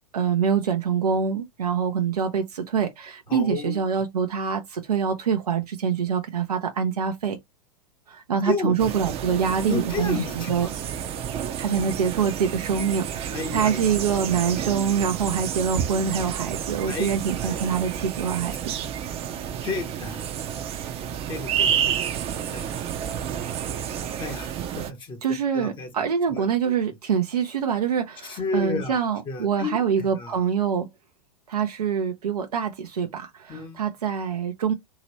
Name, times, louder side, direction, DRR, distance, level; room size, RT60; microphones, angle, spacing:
voice 1, 0.1-7.4 8.1-10.7 11.6-18.7 25.2-30.9 31.5-34.7, right 7 dB, 80° right, 0.6 m, -25 dB
voice 2, 3.3-3.8 8.4-8.7 9.7-10.8 13.3-13.9 16.9-17.1 17.4-17.7 19.6-20.5 21.3-22.1 22.4-22.8 24.2-25.9 26.3-26.7 28.2-29.0 29.3-29.7 30.0-30.4 33.5-33.8, left 4 dB, 25° left, 0.8 m, -32 dB
sound 1, 8.8-24.9, right 9 dB, 30° right, 0.6 m, -30 dB
2.9 x 2.8 x 3.0 m
figure-of-eight pair, 100°, 20 cm